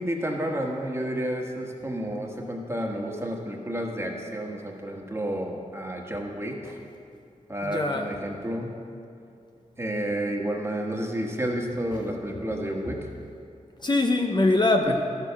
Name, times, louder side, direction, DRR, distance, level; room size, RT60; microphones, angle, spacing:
voice 1, 0.0-6.8 7.5-8.7 9.8-13.1 14.9-15.0, right 1 dB, 20° right, 0 dB, 1.4 m, -30 dB
voice 2, 7.6-8.1 13.8-14.9, left 2 dB, 35° left, 3 dB, 0.7 m, -23 dB
13.0 x 6.6 x 5.8 m, 2.5 s
wide cardioid pair, 80°, 13 cm